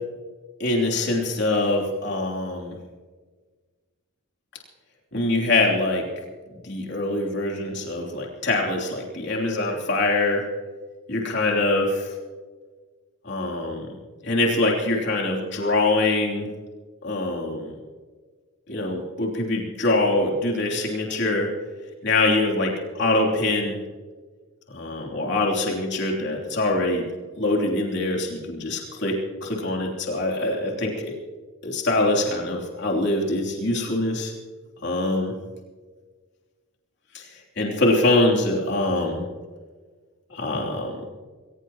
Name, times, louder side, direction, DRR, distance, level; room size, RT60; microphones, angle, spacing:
voice 1, 0.6-2.8 5.1-6.0 6.6-10.4 11.1-12.1 13.2-13.9 14.2-16.5 17.0-17.7 18.7-21.5 22.0-23.8 24.7-27.1 27.4-31.2 31.6-34.3 34.8-35.3 37.1-37.3 37.6-39.2 40.3-41.0, left 2 dB, 50° left, -1 dB, 3.2 m, -24 dB
21.5 x 19.0 x 3.0 m, 1.4 s
head